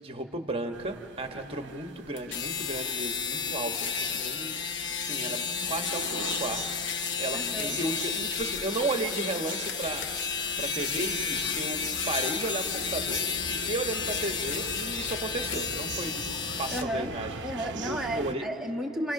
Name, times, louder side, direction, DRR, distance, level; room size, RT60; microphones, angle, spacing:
voice 1, 0.0-10.1 10.6-11.8 12.1-16.2 16.6-17.4 17.8-18.5, right 2 dB, 25° right, 5 dB, 1.3 m, -34 dB
sound 1, 0.7-18.3, right 4 dB, 55° right, 0.8 m, -42 dB
sound 2, 2.2-16.9, left 7 dB, 55° left, 1.0 m, -32 dB
voice 2, 7.3-7.8 16.7-17.1 17.4-19.1, equal, ahead, 0 dB, 1.6 m, -33 dB
29.0 x 28.5 x 6.0 m, 2.8 s
head